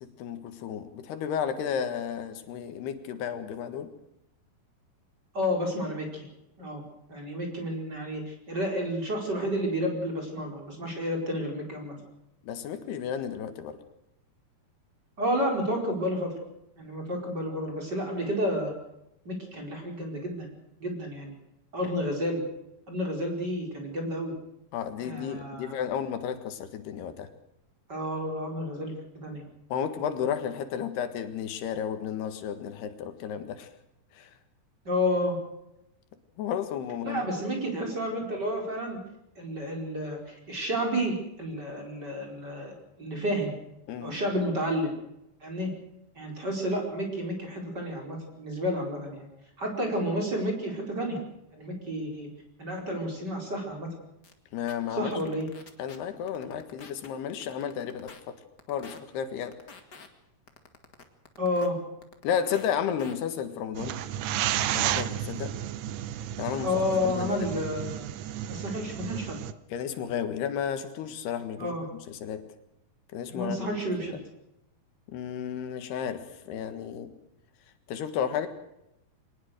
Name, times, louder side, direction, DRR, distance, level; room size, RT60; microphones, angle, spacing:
voice 1, 0.0-3.9 12.4-13.8 24.7-27.3 29.7-33.7 34.2-34.3 36.4-37.2 43.9-44.2 54.5-55.2 55.8-58.4 58.7-59.5 62.2-64.0 64.7-65.6 66.4-67.3 69.7-71.7 72.1-72.5 73.1-73.7 75.1-77.1 77.9-78.5, left 8 dB, 90° left, 3.7 m, -33 dB
voice 2, 5.3-6.3 6.6-6.8 7.1-12.0 15.2-16.3 16.8-18.7 19.2-20.5 20.8-21.3 21.7-22.4 22.9-24.3 25.0-25.8 27.9-28.9 29.2-29.4 34.8-35.4 37.0-39.0 39.4-43.5 44.0-45.0 45.4-45.7 46.1-49.3 49.6-51.2 51.5-52.3 52.6-53.9 54.9-55.5 61.4-61.8 66.6-68.1 68.5-69.4 71.6-71.9 73.3-74.2, equal, 25° right, 5.1 m, -30 dB
sound 1, 54.2-54.3 54.7-54.8 55.1-56.0 56.3-57.1 57.4-58.2 58.6-59.0 59.4-60.1 60.5-61.7 62.0-62.7 63.0-63.1, left 5 dB, 35° left, 1.8 m, -47 dB
sound 2, 63.7-69.5, right 11 dB, 75° right, 1.9 m, -32 dB
24.0 x 19.5 x 6.5 m
omnidirectional pair, 4.5 m